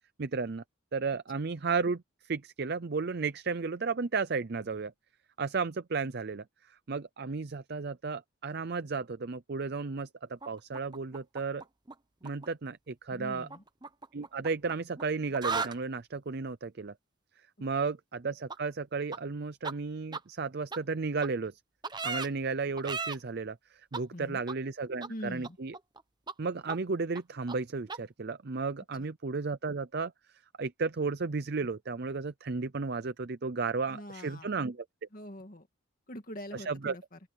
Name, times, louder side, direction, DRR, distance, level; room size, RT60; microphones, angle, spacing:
voice 1, 0.2-0.6 0.9-4.9 5.4-11.6 12.2-13.5 14.1-16.9 17.6-21.6 22.0-25.7 26.4-30.1 30.6-34.8 36.5-36.9, right 4 dB, 50° right, 0.6 m, -34 dB
sound 1, 10.4-11.9 12.2-12.5 13.5-15.0 15.3-15.8 18.5-18.6 19.1-19.2 19.6-19.7 20.1-20.2 20.7-20.8 21.2-21.3 21.8-22.3 22.8-23.2 23.9-24.0 24.5-24.6 25.0-25.1 25.4-26.0 26.3-26.4 26.7-26.8 27.1-27.2 27.5-27.6 27.9-28.0, right 4 dB, 20° right, 0.9 m, -36 dB
voice 2, 13.1-13.6 24.1-24.4 25.1-25.6 33.9-34.5 35.1-35.7 36.1-37.2, equal, 40° left, 2.1 m, -43 dB
open air
head